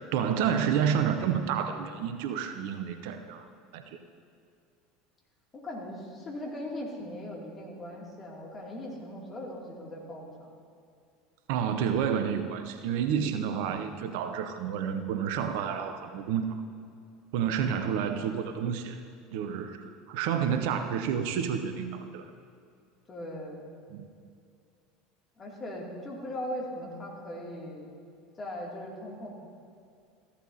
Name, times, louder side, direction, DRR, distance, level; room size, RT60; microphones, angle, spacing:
voice 1, 0.1-3.5 3.7-3.8 11.5-16.4 17.3-19.0 19.3-22.3 23.9-24.1, right 8 dB, 60° right, 8 dB, 0.6 m, -29 dB
voice 2, 5.5-10.5 23.1-23.7 25.4-27.9 28.4-29.5, left 1 dB, 30° left, -2 dB, 2.6 m, -39 dB
15.0 x 11.5 x 2.8 m, 2.4 s
figure-of-eight pair, 75°, 0 cm